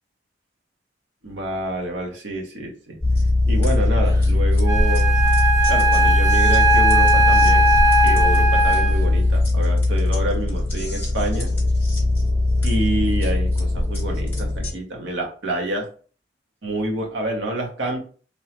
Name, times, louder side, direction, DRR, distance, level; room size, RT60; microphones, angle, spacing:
voice 1, 1.2-3.0 3.5-5.2 5.7-7.7 8.0-11.5 12.6-15.9 16.6-18.0, right 1 dB, 85° right, 1 dB, 0.8 m, -28 dB
sound 1, 3.0-14.7, left 2 dB, 10° left, 0.9 m, -19 dB
Wind instrument woodwind instrument, 4.6-9.2, right 2 dB, 20° right, 0.4 m, -19 dB
2.9 x 2.0 x 2.8 m, 0.41 s
head